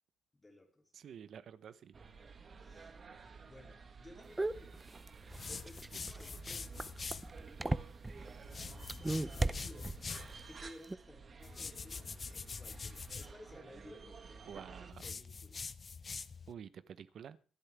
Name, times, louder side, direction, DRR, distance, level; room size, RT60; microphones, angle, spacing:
voice 1, 0.3-0.9 2.6-3.0 3.4-4.9 5.5-6.9 8.2-10.0 10.4-15.6, left 1 dB, 15° left, 3.0 m, -57 dB
voice 2, 0.9-2.0 5.9-6.1 14.5-15.0 16.5-17.4, right 8 dB, 60° right, 0.9 m, -50 dB
sound 1, 1.9-14.9, right 4 dB, 40° right, 1.3 m, -52 dB
sound 2, 4.4-8.3 8.8-10.3 10.6-11.0, right 2 dB, 15° right, 0.6 m, -36 dB
sound 3, 5.3-7.3 8.4-10.3 11.4-13.3 14.9-16.5, left 5 dB, 35° left, 0.6 m, -45 dB
24.5 x 8.5 x 3.5 m
cardioid pair, 90°, 0 cm